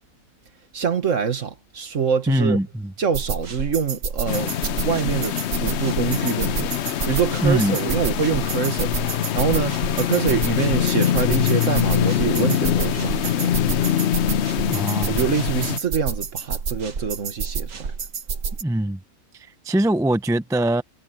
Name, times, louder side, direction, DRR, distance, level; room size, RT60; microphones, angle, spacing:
voice 1, 0.7-2.6 3.0-13.6 15.1-17.9, right 6 dB, 55° right, 1.8 m, -25 dB
voice 2, 2.3-2.7 7.4-7.8 14.7-15.2 18.6-19.0 19.6-20.8, right 1 dB, 5° right, 0.3 m, -21 dB
sound 1, 3.1-18.6, right 5 dB, 75° right, 2.0 m, -30 dB
sound 2, 4.3-15.8, left 10 dB, 60° left, 0.8 m, -24 dB
omnidirectional pair, 1.6 m